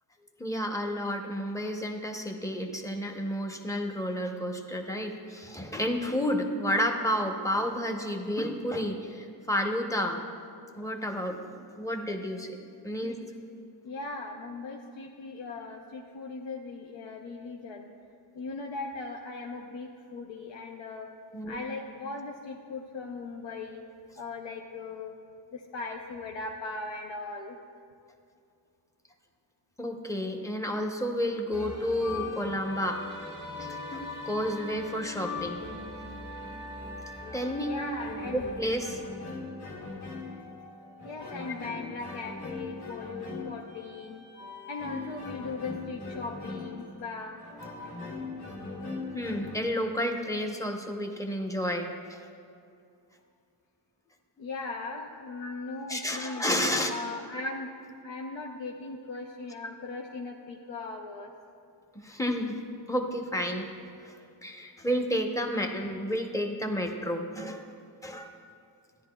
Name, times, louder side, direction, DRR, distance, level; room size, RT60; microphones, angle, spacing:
voice 1, 0.4-10.2 10.8-12.6 12.8-13.2 21.3-21.6 29.8-33.0 33.6-35.7 37.3-37.7 38.3-39.0 49.1-52.2 55.4-55.6 55.9-57.0 57.4-57.5 61.9-62.5 62.9-63.7 64.0-67.6 68.0-68.3, equal, 5° left, 3 dB, 0.7 m, -31 dB
voice 2, 13.8-17.9 18.3-21.1 21.5-23.8 24.2-25.2 25.5-27.6 37.6-38.5 39.3-39.5 41.0-44.2 44.7-47.4 54.4-56.4 56.9-57.7 58.0-61.3, left 3 dB, 85° left, 1 dB, 0.7 m, -39 dB
sound 1, 31.5-49.6, left 3 dB, 45° left, 1.7 m, -40 dB
14.0 x 10.5 x 2.2 m, 2.4 s
wide cardioid pair, 115°, 44 cm